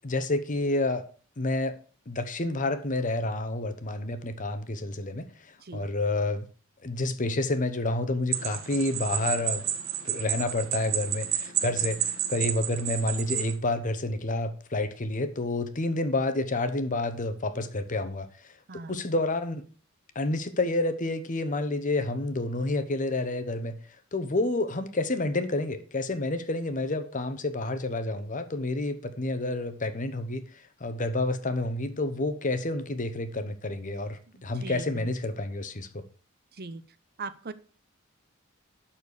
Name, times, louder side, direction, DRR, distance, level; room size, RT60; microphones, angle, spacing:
voice 1, 0.0-1.0 1.4-1.7 2.1-6.4 6.8-9.7 10.0-18.3 18.7-19.6 20.1-23.8 24.1-30.4 30.8-36.0, left 2 dB, 40° left, 0.9 m, -29 dB
sound 1, 8.3-13.5, right 10 dB, 70° right, 1.4 m, -31 dB
voice 2, 18.7-19.0 34.3-35.1 36.5-36.8 37.2-37.5, right 3 dB, 45° right, 0.8 m, -40 dB
12.0 x 4.4 x 6.5 m
head